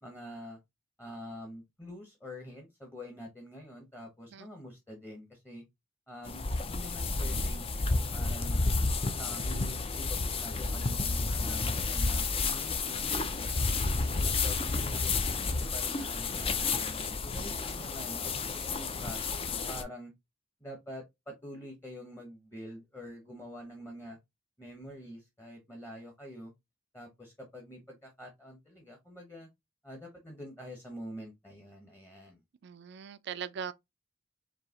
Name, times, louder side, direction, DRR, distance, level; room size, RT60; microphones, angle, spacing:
voice 1, 0.0-0.6 1.0-5.6 6.1-7.7 8.1-8.6 9.2-13.1 13.6-20.1 20.6-24.2 24.6-26.5 26.9-29.5 29.8-32.4, equal, 10° left, 0.9 m, -46 dB
sound 1, 6.3-19.8, left 3 dB, 30° left, 0.5 m, -31 dB
voice 2, 32.6-33.7, right 7 dB, 60° right, 0.4 m, -40 dB
4.6 x 2.8 x 2.8 m
head